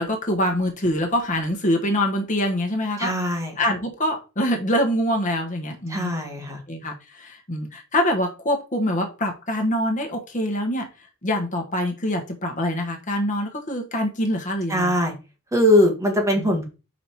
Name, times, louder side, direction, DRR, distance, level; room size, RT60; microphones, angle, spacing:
voice 1, 0.0-3.1 3.6-6.1 6.7-10.9 11.2-14.9 16.4-16.7, left 1 dB, 35° left, 3 dB, 1.4 m, -25 dB
voice 2, 3.0-3.5 5.9-6.6 14.7-15.1 15.5-16.7, left 1 dB, 15° right, 1 dB, 1.6 m, -21 dB
5.3 x 5.0 x 4.6 m, 0.30 s
head